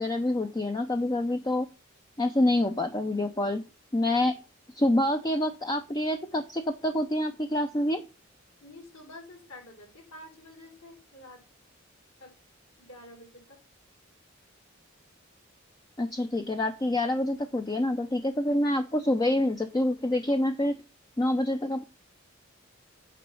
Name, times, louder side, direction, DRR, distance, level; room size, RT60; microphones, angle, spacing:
voice 1, 0.0-1.7 2.2-3.6 3.9-4.3 4.7-8.0 16.0-20.8 21.2-21.8, left 1 dB, 20° left, 6 dB, 0.6 m, -27 dB
voice 2, 8.6-11.4 12.2-12.3 12.9-13.6, left 1 dB, 70° left, -8 dB, 6.0 m, -48 dB
9.3 x 4.0 x 6.2 m, 0.29 s
head